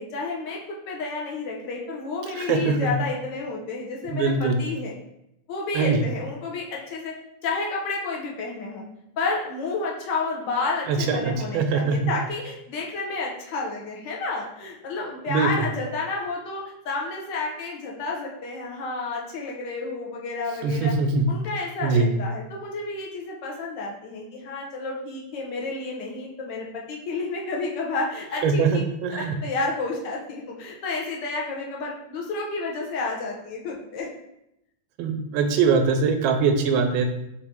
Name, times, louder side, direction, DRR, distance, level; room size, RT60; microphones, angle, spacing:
voice 1, 0.0-4.9 5.5-7.2 7.4-8.8 9.2-20.9 21.3-28.8 29.1-34.1, left 3 dB, 70° left, -2 dB, 1.3 m, -31 dB
voice 2, 2.4-2.9 4.1-4.6 5.7-6.0 10.9-12.1 15.3-15.7 20.6-21.2 21.8-22.1 28.4-29.4 35.0-37.1, right 4 dB, 90° right, 6 dB, 1.4 m, -22 dB
4.0 x 2.6 x 3.5 m, 0.82 s
omnidirectional pair, 2.1 m